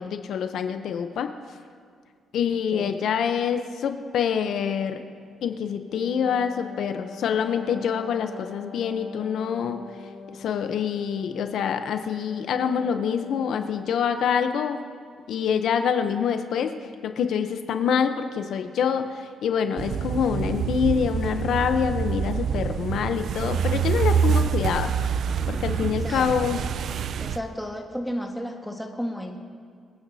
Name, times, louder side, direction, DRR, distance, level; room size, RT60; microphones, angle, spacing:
voice 1, 0.0-1.3 2.3-5.0 5.4-9.8 10.3-14.8 15.3-24.9 25.5-26.6, left 7 dB, 70° left, 8 dB, 0.7 m, -26 dB
Wind instrument woodwind instrument, 5.8-14.0, left 5 dB, 20° left, 1.6 m, -43 dB
sound 1, 19.8-27.4, right 7 dB, 65° right, 0.4 m, -26 dB
voice 2, 25.9-26.3 27.2-29.4, equal, 5° left, 2 dB, 1.4 m, -33 dB
24.5 x 9.1 x 2.7 m, 2.1 s
cardioid pair, 90°, 0 cm